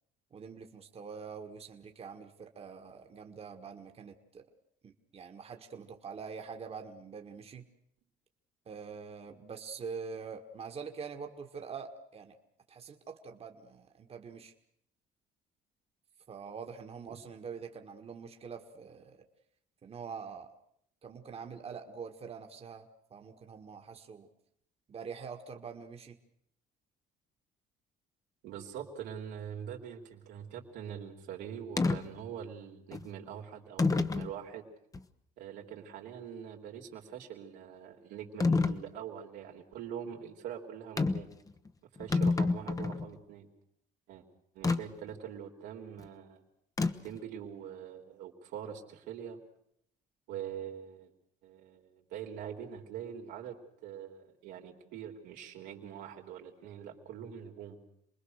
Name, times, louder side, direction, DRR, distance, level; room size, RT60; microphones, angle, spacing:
voice 1, 0.3-4.5 4.8-7.7 8.7-12.4 12.7-14.5 16.3-19.2 19.8-20.5 21.0-24.3 24.9-26.2, right 6 dB, 35° right, 4 dB, 1.7 m, -45 dB
voice 2, 28.4-34.7 35.4-41.3 42.0-43.5 44.1-44.2 44.5-46.4 47.0-49.4 50.3-51.1 51.4-57.8, right 8 dB, 90° right, 1 dB, 3.4 m, -44 dB
sound 1, 31.8-32.0 32.9-33.0 33.8-34.3 34.9-35.0 38.4-38.8 41.0-41.3 41.7-41.8 42.0-43.1 44.6-44.8 46.8-47.2, left 3 dB, 20° left, 1.0 m, -28 dB
28.0 x 20.5 x 6.6 m, 0.72 s
cardioid pair, 110°, 17 cm